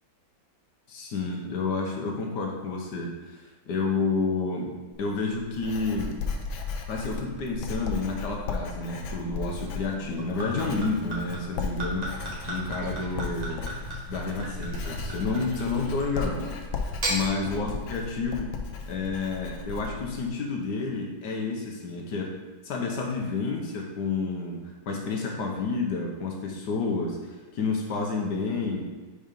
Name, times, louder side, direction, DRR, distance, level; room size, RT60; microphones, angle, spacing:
voice 1, 0.9-4.7 5.0-6.2 6.9-13.7 14.1-16.5 17.1-18.5 18.9-22.3 22.6-24.6 24.9-28.8, left 4 dB, 65° left, 0 dB, 1.4 m, -30 dB
Writing, 4.9-20.3, left 4 dB, 90° left, 1.5 m, -36 dB
Gurgling / Chink clink / Liquid, 10.0-16.1 16.8-17.2, right 1 dB, 25° right, 1.2 m, -35 dB
5.2 x 4.3 x 5.1 m, 1.2 s
omnidirectional pair, 2.1 m